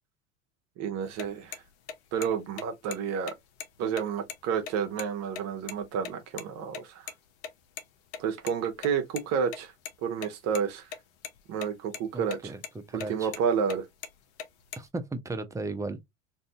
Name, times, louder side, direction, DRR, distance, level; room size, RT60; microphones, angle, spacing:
voice 1, 0.8-1.6 2.1-3.3 3.8-7.1 8.2-9.7 10.0-10.9 11.5-12.5 12.9-13.9, right 7 dB, 40° right, 0.8 m, -30 dB
sound 1, 1.0-6.1 6.4-6.5 6.7-6.8 7.1-7.2 7.4-7.5 7.8-7.9 8.1-9.2 9.5-9.9 10.2-11.0 11.2-11.7 11.9-12.4 12.6-12.7 13.0-13.4 13.7-14.9, left 8 dB, 60° left, 0.8 m, -39 dB
voice 2, 12.1-12.6 12.9-13.3 14.8-16.0, right 2 dB, 10° right, 0.6 m, -35 dB
2.7 x 2.6 x 3.5 m
hypercardioid pair, 80°, 39 cm